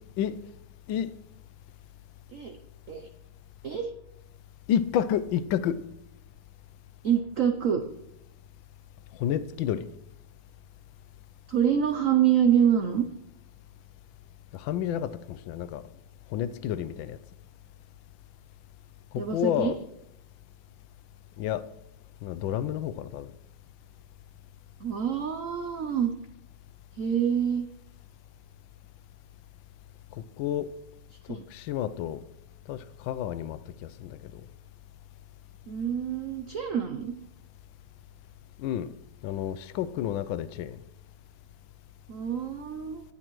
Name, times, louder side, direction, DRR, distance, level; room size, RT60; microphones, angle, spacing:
voice 1, 4.7-5.8 9.2-9.9 14.5-15.8 16.3-17.2 19.1-19.8 21.4-21.6 22.2-23.3 30.4-30.7 31.5-32.2 32.7-34.3 38.6-38.9 39.2-40.8, left 10 dB, 75° left, 1.2 m, -30 dB
voice 2, 7.0-7.8 11.5-13.0 19.2-19.7 24.8-26.1 27.0-27.7 31.3-31.5 35.7-37.1 42.1-43.0, right 8 dB, 85° right, 0.7 m, -26 dB
19.0 x 8.5 x 3.1 m
omnidirectional pair, 2.3 m